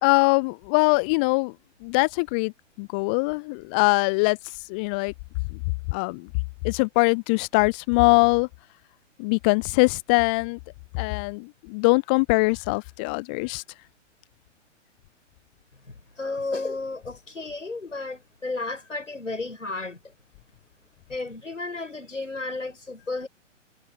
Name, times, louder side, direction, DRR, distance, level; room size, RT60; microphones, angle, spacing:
voice 1, 0.0-1.5 1.8-2.5 2.8-4.4 4.7-5.1 5.5-5.6 5.9-6.3 6.6-8.5 9.2-10.6 10.9-13.6, left 31 dB, 10° left, 0.4 m, -22 dB
voice 2, 15.9-20.0 21.1-23.3, left 3 dB, 80° left, 7.9 m, -33 dB
figure-of-eight pair, 120°, 37 cm